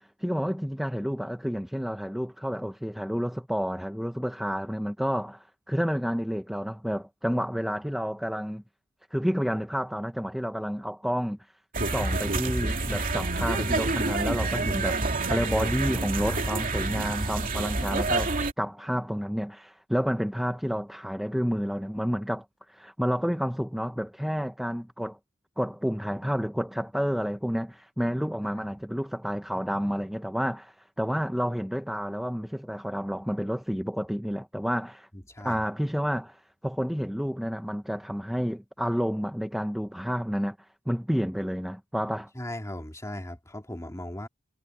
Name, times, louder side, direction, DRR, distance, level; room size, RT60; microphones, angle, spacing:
voice 1, 0.0-8.6 9.1-11.4 11.9-25.2 25.6-35.1 35.4-42.3, equal, ahead, 0.8 m, -30 dB
sound 1, 11.7-18.5, right 2 dB, 40° right, 2.5 m, -28 dB
voice 2, 35.1-35.6 42.3-44.3, left 1 dB, 15° left, 2.7 m, -38 dB
head